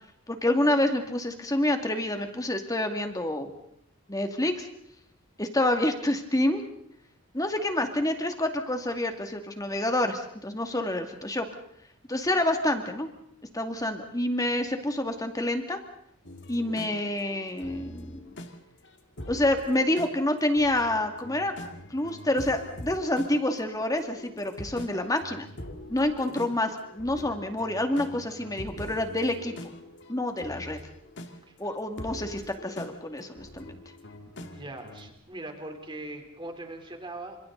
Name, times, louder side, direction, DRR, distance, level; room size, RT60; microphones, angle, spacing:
voice 1, 0.3-3.5 4.1-4.7 5.4-6.6 7.3-11.5 12.1-13.1 13.5-15.8 16.5-18.3 19.3-21.5 21.9-25.5 25.9-29.5 30.1-30.8 31.6-33.8, left 1 dB, 15° left, 5 dB, 2.3 m, -28 dB
sound 1, 16.2-35.2, left 1 dB, 55° left, 2.2 m, -44 dB
voice 2, 34.3-37.4, right 2 dB, 25° right, 4 dB, 3.6 m, -41 dB
29.5 x 27.0 x 4.0 m, 0.72 s
head